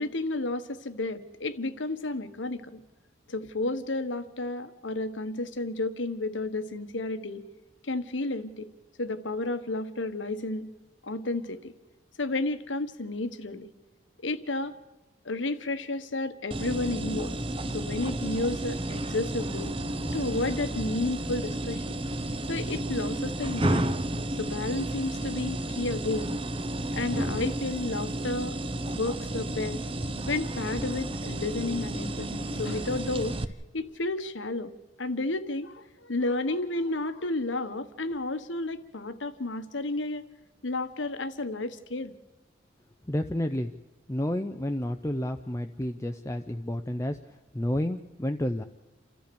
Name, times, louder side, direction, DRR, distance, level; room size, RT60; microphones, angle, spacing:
voice 1, 0.0-2.8 3.3-7.5 7.8-8.7 9.0-10.7 11.0-11.7 12.2-13.7 14.2-14.8 15.2-17.4 17.7-19.7 20.1-22.0 22.5-23.9 24.4-26.4 26.9-28.5 28.9-29.8 30.3-33.4 33.7-34.7 35.0-40.3 40.6-42.1, left 2 dB, 85° left, 11 dB, 1.3 m, -32 dB
sound 1, 16.5-33.4, right 1 dB, 30° right, 0.9 m, -32 dB
voice 2, 43.1-43.7 44.1-47.2 47.5-48.6, left 1 dB, 15° left, 6 dB, 0.6 m, -30 dB
29.0 x 13.5 x 7.0 m, 1.1 s
head